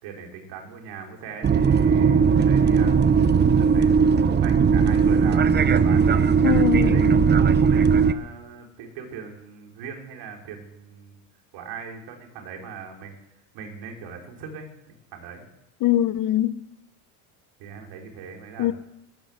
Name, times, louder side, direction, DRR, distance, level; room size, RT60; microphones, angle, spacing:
voice 1, 0.0-3.0 3.4-6.2 6.8-11.2 11.5-13.1 13.5-14.7 15.1-15.5 17.6-18.7, right 6 dB, 60° right, 4.6 m, -39 dB
sound 1, 1.4-8.1, right 6 dB, 25° right, 0.8 m, -18 dB
voice 2, 6.4-7.3 15.8-16.6 18.6-18.7, left 13 dB, 45° left, 0.9 m, -23 dB
13.5 x 12.0 x 8.0 m
hypercardioid pair, 90°, 45 cm